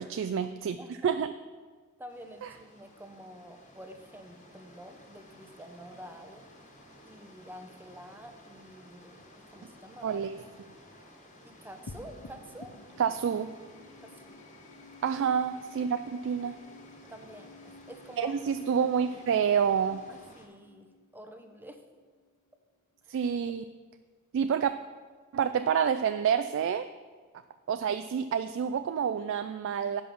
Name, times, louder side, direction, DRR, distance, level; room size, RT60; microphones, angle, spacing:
voice 1, 0.0-1.3 2.4-2.5 10.0-10.7 13.0-13.6 15.0-16.6 18.2-20.0 23.1-23.6 24.3-24.7 25.3-26.9 27.7-30.0, right 7 dB, 60° right, 10 dB, 0.3 m, -28 dB
voice 2, 0.8-1.1 2.0-6.4 7.0-9.2 9.5-10.2 11.4-12.7 14.0-14.3 17.1-18.3 20.1-20.9 21.1-21.8 23.1-23.2, right 1 dB, 10° right, 6 dB, 0.7 m, -48 dB
sound 1, 2.1-20.5, left 1 dB, 35° left, 1.6 m, -55 dB
sound 2, 11.9-22.5, left 3 dB, 80° left, 0.6 m, -53 dB
10.5 x 5.4 x 5.9 m, 1.5 s
head